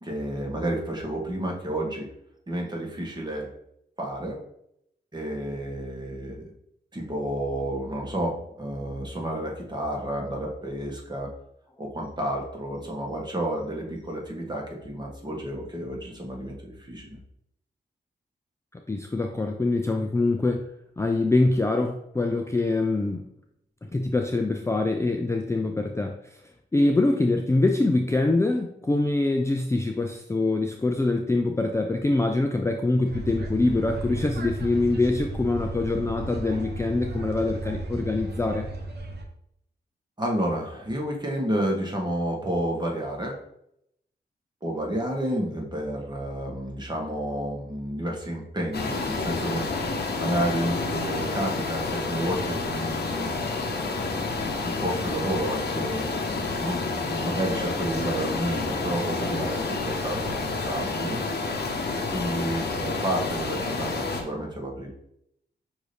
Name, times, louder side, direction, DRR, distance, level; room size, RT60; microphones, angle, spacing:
voice 1, 0.0-2.1 2.5-3.5 4.0-4.4 5.1-6.5 6.9-11.3 11.8-17.2 40.2-43.4 44.6-49.7 50.2-53.3 53.8-61.2 61.6-64.9, right 1 dB, 25° right, -1 dB, 1.3 m, -31 dB
voice 2, 18.9-20.6 21.0-23.3 23.8-26.4 26.7-38.7, left 2 dB, 15° left, 3 dB, 0.4 m, -24 dB
sound 1, 33.1-39.3, right 2 dB, 60° right, 0.8 m, -34 dB
sound 2, 48.7-64.2, left 3 dB, 60° left, 0.8 m, -29 dB
6.0 x 2.7 x 3.3 m, 0.76 s
cardioid pair, 75°, 19 cm